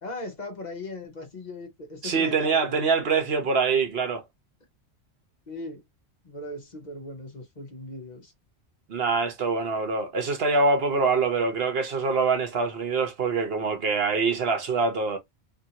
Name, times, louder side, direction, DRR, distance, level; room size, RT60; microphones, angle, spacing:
voice 1, 0.0-2.8 5.5-5.8 6.2-8.3, left 2 dB, 45° left, 1.0 m, -38 dB
voice 2, 2.0-4.2 8.9-15.2, right 4 dB, 65° right, 1.1 m, -24 dB
2.8 x 2.7 x 2.8 m
omnidirectional pair, 1.1 m